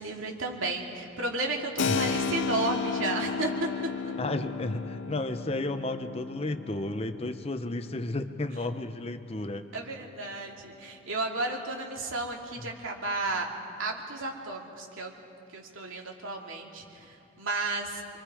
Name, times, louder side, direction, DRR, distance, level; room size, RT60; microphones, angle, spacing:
voice 1, 0.0-3.7 9.7-13.5 13.8-15.1 15.5-18.2, right 2 dB, 90° right, 0 dB, 2.6 m, -33 dB
Keyboard (musical), 1.8-10.2, left 5 dB, 65° left, 0.6 m, -34 dB
voice 2, 4.2-9.6 12.6-12.7, left 2 dB, 30° left, 9 dB, 0.8 m, -33 dB
28.0 x 23.5 x 4.9 m, 2.6 s
head